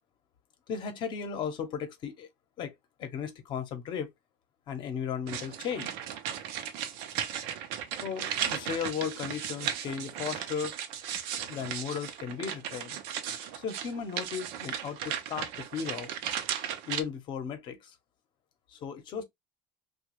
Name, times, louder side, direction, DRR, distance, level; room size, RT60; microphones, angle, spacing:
voice 1, 0.7-2.3 2.6-2.7 3.0-4.1 4.7-5.9 8.0-10.7 11.5-13.0 13.5-16.1 16.9-18.0 18.7-19.2, left 7 dB, 50° left, 0.8 m, -36 dB
sound 1, 5.3-17.0, right 9 dB, 75° right, 0.6 m, -36 dB
2.9 x 2.3 x 2.9 m
supercardioid pair, 110°, 10 cm